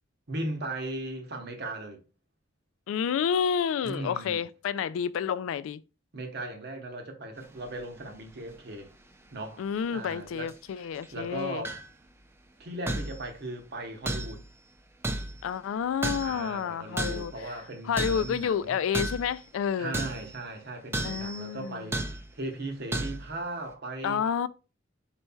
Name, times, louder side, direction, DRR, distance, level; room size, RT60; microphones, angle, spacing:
voice 1, 0.3-2.0 3.8-4.4 6.1-8.9 9.3-9.6 9.9-10.9 11.1-11.8 12.6-14.4 16.2-18.8 19.8-24.3, right 2 dB, 60° right, 0.9 m, -37 dB
voice 2, 2.9-5.8 9.6-11.6 15.4-17.5 17.8-20.0 21.0-21.9 24.0-24.5, left 7 dB, 85° left, 0.3 m, -30 dB
sound 1, 7.7-8.2 8.5-8.6 10.5-10.6 10.9-11.1 11.6-11.9 12.9-13.3 14.0-14.5 15.0-15.5 16.0-16.5 17.0-17.4 18.0-18.4 18.9-19.4 19.9-20.4 20.9-21.5 21.9-22.3 22.9-23.3, right 1 dB, 15° right, 0.4 m, -33 dB
4.4 x 4.1 x 2.3 m
head